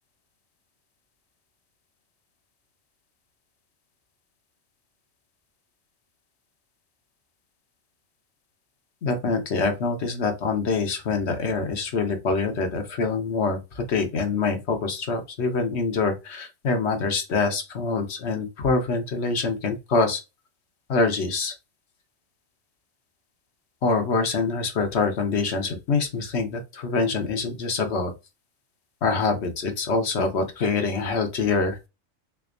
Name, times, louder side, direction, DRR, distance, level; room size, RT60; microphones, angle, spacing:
voice 1, 9.0-20.2 20.9-21.5 23.8-28.1 29.0-31.8, left 4 dB, 60° left, 1.2 m, -25 dB
3.8 x 3.4 x 2.5 m
omnidirectional pair, 1.3 m